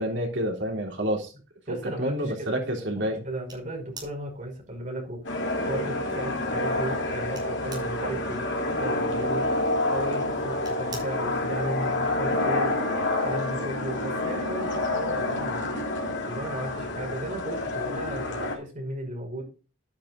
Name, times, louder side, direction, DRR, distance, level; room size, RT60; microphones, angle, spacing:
voice 1, 0.0-1.3 1.8-3.2, equal, 65° right, 1 dB, 3.4 m, -28 dB
voice 2, 1.7-2.6 3.0-5.2 5.7-12.8 13.2-15.7 16.2-19.4, right 1 dB, 40° right, 1 dB, 5.8 m, -35 dB
sound 1, 3.4-11.6, right 4 dB, 20° right, 6.0 m, -50 dB
sound 2, 5.2-18.5, left 2 dB, 60° left, 3.1 m, -28 dB
12.0 x 10.5 x 2.6 m, 0.33 s
head